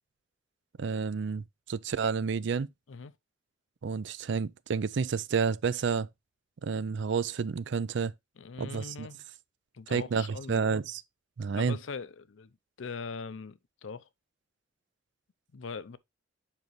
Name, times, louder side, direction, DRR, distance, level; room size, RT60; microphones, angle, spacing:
voice 1, 0.8-2.7 3.8-6.1 6.6-8.1 8.6-9.1 9.9-11.0 11.4-11.8, right 5 dB, 65° right, 0.4 m, -30 dB
voice 2, 8.4-9.2 9.7-10.8 11.5-12.5 12.8-14.1 15.5-16.0, left 5 dB, 90° left, 0.6 m, -41 dB
7.3 x 5.2 x 3.1 m
head